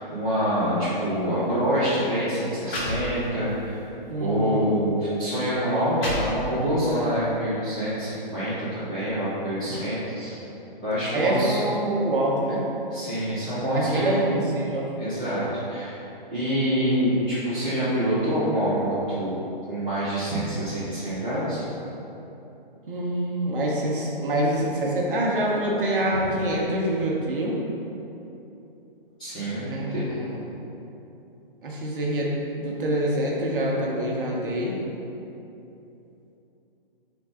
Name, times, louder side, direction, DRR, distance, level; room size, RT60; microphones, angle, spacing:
voice 1, 0.1-3.8 4.2-10.4 10.8-11.6 12.9-14.3 15.0-16.0 16.3-19.3 19.7-21.6 29.2-30.0, equal, 10° left, -16 dB, 0.6 m, -26 dB
sound 1, 1.4-1.6 2.3-2.4 2.6-3.6 4.1-4.3 5.1-5.2 5.7-6.8, equal, 85° left, 1.4 m, -32 dB
voice 2, 4.1-4.7 11.1-12.6 13.7-14.9 22.9-27.6 29.6-30.4 31.6-32.3 32.6-34.7, right 1 dB, 65° right, -3 dB, 1.0 m, -25 dB
3.9 x 3.6 x 3.6 m, 2.9 s
hypercardioid pair, 175°, 29 cm